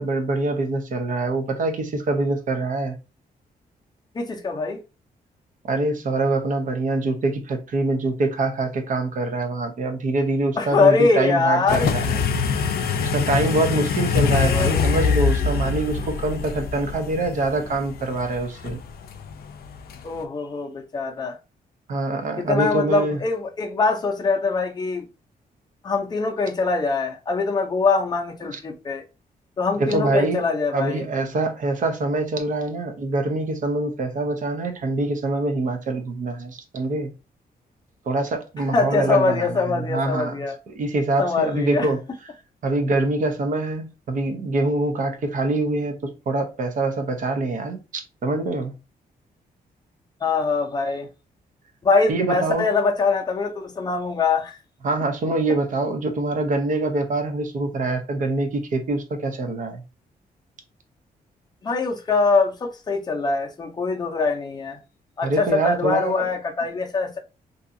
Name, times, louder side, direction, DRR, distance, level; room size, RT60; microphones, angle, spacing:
voice 1, 0.0-3.0 5.7-12.2 12.5-12.6 13.1-18.8 21.9-23.2 28.5-28.6 29.8-30.4 30.7-37.1 38.1-42.0 42.6-47.8 48.2-48.7 52.1-52.7 54.8-59.8 65.2-66.2, right 2 dB, 55° right, 0.6 m, -24 dB
voice 2, 4.1-4.8 10.6-11.9 14.4-14.9 20.0-21.3 22.4-25.0 25.8-29.0 29.6-31.0 38.7-40.6 41.2-41.9 50.2-51.1 51.8-54.6 61.6-64.8 65.2-67.2, left 4 dB, 25° left, 0.6 m, -23 dB
sound 1, 11.7-20.2, left 6 dB, 75° left, 0.4 m, -24 dB
2.7 x 2.4 x 2.6 m
wide cardioid pair, 150°, 16 cm